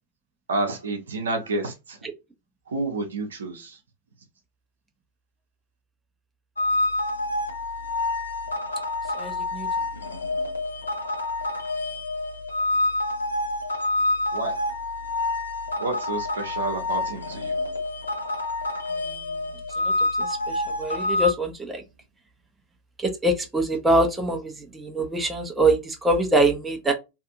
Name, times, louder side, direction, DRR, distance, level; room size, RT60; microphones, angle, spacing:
voice 1, 0.5-2.0 2.7-3.8 14.3-14.7 15.8-17.6, right 2 dB, 70° right, 0.7 m, -29 dB
sound 1, 6.6-21.3, left 2 dB, 80° left, 0.7 m, -27 dB
voice 2, 9.2-9.7 19.0-19.3 20.2-21.8 23.0-26.9, right 1 dB, 10° right, 0.7 m, -24 dB
2.7 x 2.5 x 2.4 m
figure-of-eight pair, 90°, 0 cm